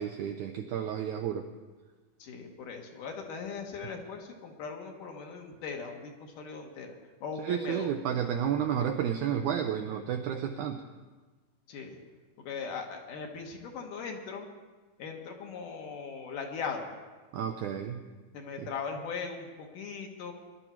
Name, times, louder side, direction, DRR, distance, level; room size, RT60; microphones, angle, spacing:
voice 1, 0.0-1.5 7.4-10.8 17.3-18.0 18.6-18.7, right 8 dB, 85° right, 5 dB, 1.7 m, -31 dB
voice 2, 2.2-6.9 7.2-7.9 11.7-12.0 12.5-14.5 15.0-16.9 18.3-20.3, left 5 dB, 65° left, 2 dB, 2.8 m, -39 dB
21.5 x 11.5 x 4.5 m, 1.3 s
omnidirectional pair, 4.3 m